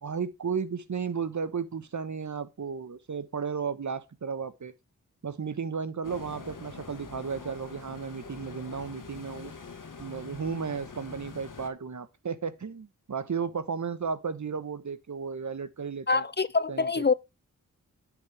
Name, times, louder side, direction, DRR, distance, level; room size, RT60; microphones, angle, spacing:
voice 1, 0.0-4.7 5.2-9.5 10.0-16.2 16.7-17.1, right 6 dB, 55° right, 1.3 m, -34 dB
sound 1, 6.0-11.7, left 4 dB, 60° left, 1.7 m, -44 dB
voice 2, 16.1-17.1, left 4 dB, 30° left, 0.5 m, -25 dB
10.5 x 6.1 x 3.4 m
cardioid pair, 45°, 35 cm